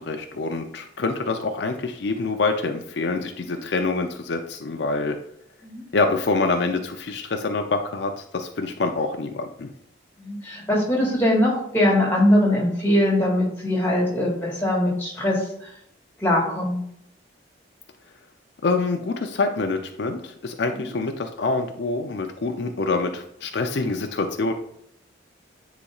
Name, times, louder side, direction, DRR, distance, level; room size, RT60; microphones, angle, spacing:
voice 1, 0.0-5.2 5.9-9.7 18.6-24.5, left 3 dB, 70° left, 5 dB, 0.5 m, -26 dB
voice 2, 10.2-15.7 16.2-16.8 20.7-20.9, left 1 dB, 10° left, -2 dB, 2.0 m, -22 dB
9.8 x 4.1 x 2.4 m, 0.72 s
head